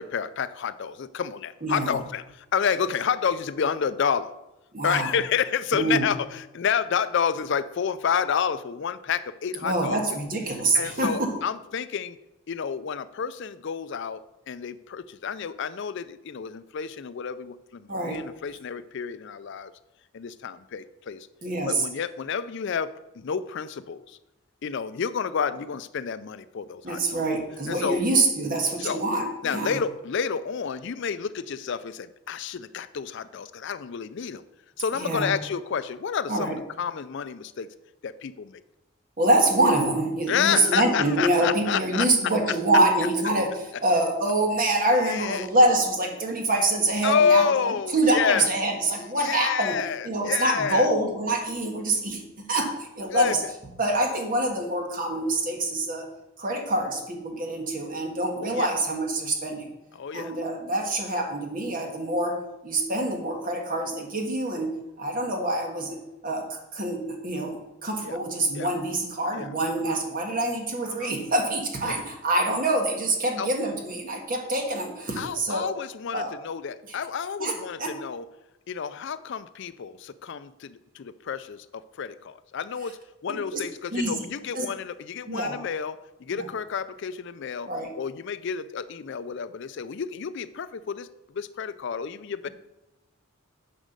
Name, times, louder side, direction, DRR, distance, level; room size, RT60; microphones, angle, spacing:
voice 1, 0.0-4.3 4.8-10.2 10.7-12.2 12.5-19.7 20.1-21.3 21.7-24.2 24.6-27.2 27.7-28.0 28.8-29.0 29.4-34.4 34.8-37.7 38.0-38.6 40.3-42.6 45.0-45.5 47.0-48.5 49.2-50.9 53.1-53.3 58.4-58.7 59.9-60.3 68.0-68.2 68.5-68.7 69.3-69.5 69.9-70.0 71.0-71.1 71.9-72.0 73.2-73.5 75.2-78.2 78.7-83.0 83.2-87.7 88.0-91.1 91.3-92.5, left 7 dB, 55° left, 14 dB, 0.4 m, -29 dB
voice 2, 1.6-2.0 4.7-5.1 5.7-6.1 9.6-11.3 17.9-18.2 21.4-21.8 26.8-29.8 35.0-35.3 36.3-36.5 39.2-49.8 50.0-53.4 53.8-56.1 56.4-59.7 60.1-75.7 76.1-76.3 76.9-77.0 77.4-77.9 83.3-83.6 83.9-84.2 84.5-84.7 85.3-85.6 86.3-86.5 87.7-87.9, right 2 dB, 40° right, 2 dB, 1.7 m, -25 dB
9.9 x 5.1 x 6.6 m, 0.97 s
head